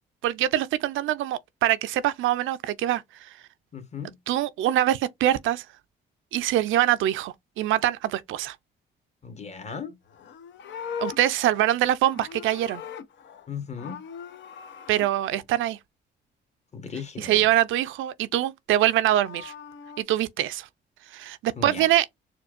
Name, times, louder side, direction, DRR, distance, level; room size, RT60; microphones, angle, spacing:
voice 1, 0.2-3.3 4.3-5.6 6.3-8.6 11.0-12.8 14.9-15.8 17.2-19.5 20.0-20.7 21.1-22.1, right 13 dB, 80° right, 0.5 m, -24 dB
voice 2, 3.7-4.2 9.2-10.0 13.5-14.0 16.7-17.5 21.6-21.9, left 6 dB, 35° left, 1.2 m, -37 dB
Livestock farm animals working animals, 10.0-13.5 13.7-15.1 18.8-20.0, left 7 dB, 65° left, 0.7 m, -40 dB
4.4 x 2.3 x 2.4 m
cardioid pair, 90°, 20 cm